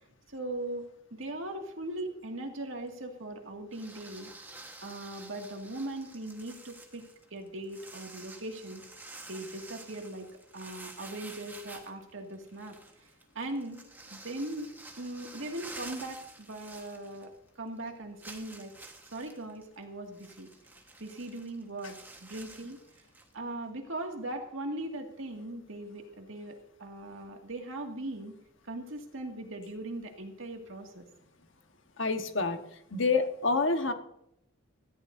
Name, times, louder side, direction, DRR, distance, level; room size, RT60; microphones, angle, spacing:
voice 1, 0.3-4.3 4.8-8.8 9.3-10.3 10.5-13.1 13.3-13.8 14.1-18.7 19.1-20.5 21.0-22.8 23.3-28.4 28.6-31.1, right 1 dB, 75° right, 2 dB, 2.1 m, -40 dB
sound 1, 3.7-17.5 17.8-17.9 18.2-23.3, right 2 dB, 10° right, 1.3 m, -50 dB
voice 2, 32.0-32.6 32.9-33.9, left 3 dB, 65° left, 6 dB, 1.3 m, -27 dB
17.5 x 14.0 x 2.7 m, 0.77 s
head